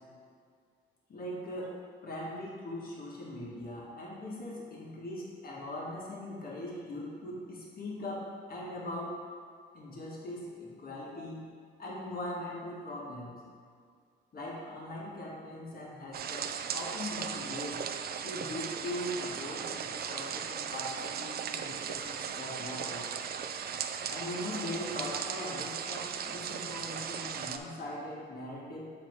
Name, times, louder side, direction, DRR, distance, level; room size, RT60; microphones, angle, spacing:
voice 1, 1.1-1.8 2.0-9.2 9.7-11.5 11.8-13.4 14.3-17.8 18.2-23.1 24.1-28.9, left 1 dB, 50° left, -4 dB, 1.9 m, -40 dB
sound 1, 16.1-27.6, right 7 dB, 50° right, 0.4 m, -37 dB
7.6 x 4.1 x 4.7 m, 2.1 s
cardioid pair, 90°, 20 cm